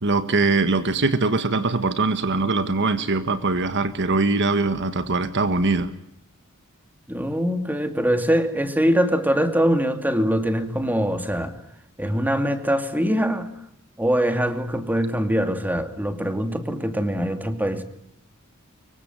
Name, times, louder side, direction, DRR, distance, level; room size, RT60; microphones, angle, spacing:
voice 1, 0.0-5.9, right 3 dB, 55° right, 11 dB, 1.5 m, -22 dB
voice 2, 7.1-11.6 12.0-13.5 14.0-17.8, equal, 10° right, 8 dB, 2.5 m, -23 dB
25.5 x 23.5 x 9.1 m, 0.74 s
head